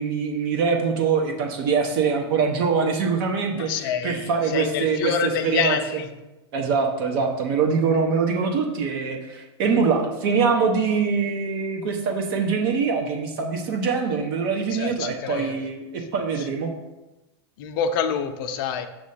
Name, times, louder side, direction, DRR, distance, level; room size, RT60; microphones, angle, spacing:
voice 1, 0.0-6.0 6.5-16.7, right 5 dB, 55° right, 2 dB, 1.0 m, -24 dB
voice 2, 3.5-6.1 14.7-15.7 17.6-18.9, left 7 dB, 50° left, 8 dB, 0.6 m, -27 dB
6.5 x 3.0 x 5.6 m, 1.0 s
supercardioid pair, 140°, 14 cm